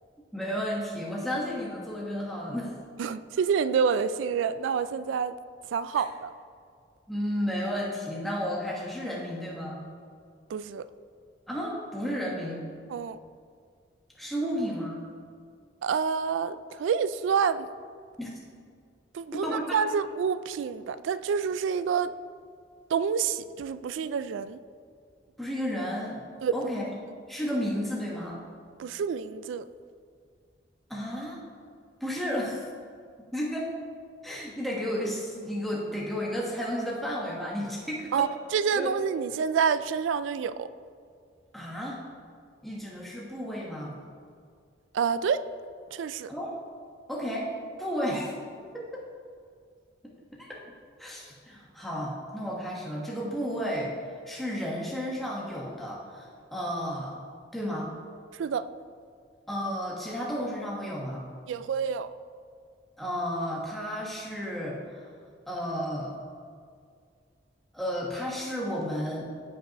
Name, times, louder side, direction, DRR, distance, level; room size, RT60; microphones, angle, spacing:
voice 1, 0.3-2.7 7.1-9.8 11.5-12.7 14.2-15.0 18.2-18.4 19.3-19.6 25.4-26.2 26.5-26.8 27.3-28.4 30.9-31.4 32.0-32.6 33.3-33.7 34.2-38.3 38.8-38.9 41.5-42.0 42.6-43.9 46.3-46.5 47.1-47.5 47.8-48.4 48.7-49.1 50.0-50.6 51.0-53.9 54.3-57.1 57.5-57.9 59.5-61.2 63.0-65.0 65.5-66.2 67.7-69.3, equal, ahead, -4 dB, 1.2 m, -32 dB
voice 2, 3.0-5.4 5.7-6.3 10.5-10.9 12.9-13.2 15.8-17.7 19.1-22.1 22.9-24.6 26.4-26.5 28.8-29.6 38.1-40.7 44.9-45.4 45.9-46.3 58.3-58.7 61.5-62.1, right 6 dB, 85° right, 14 dB, 0.3 m, -28 dB
15.0 x 5.3 x 3.0 m, 2.1 s
head